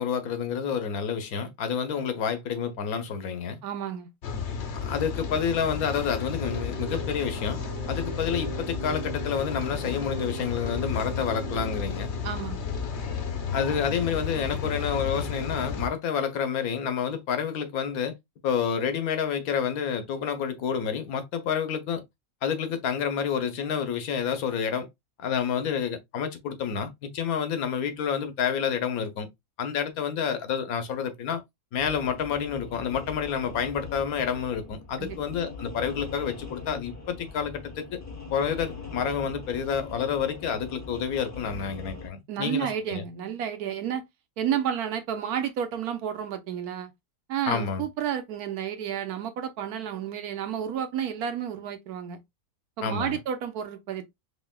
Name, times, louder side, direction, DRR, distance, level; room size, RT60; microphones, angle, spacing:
voice 1, 0.0-3.6 4.7-7.6 7.9-12.1 13.5-18.1 18.4-22.0 22.4-24.9 25.2-29.3 29.6-31.4 31.7-38.0 38.3-43.0 47.5-47.8 52.8-53.2, left 7 dB, 80° left, 1.2 m, -29 dB
voice 2, 3.6-4.1 12.2-12.7 35.0-35.2 42.3-44.0 44.4-46.9 47.3-52.2 52.8-54.0, right 9 dB, 90° right, 1.3 m, -31 dB
Rain, 4.2-15.9, left 6 dB, 55° left, 0.9 m, -32 dB
Keyboard (musical), 6.4-11.8, right 5 dB, 60° right, 0.9 m, -40 dB
sound 1, 31.8-42.1, left 4 dB, 15° left, 0.7 m, -41 dB
4.3 x 3.3 x 2.2 m
omnidirectional pair, 1.5 m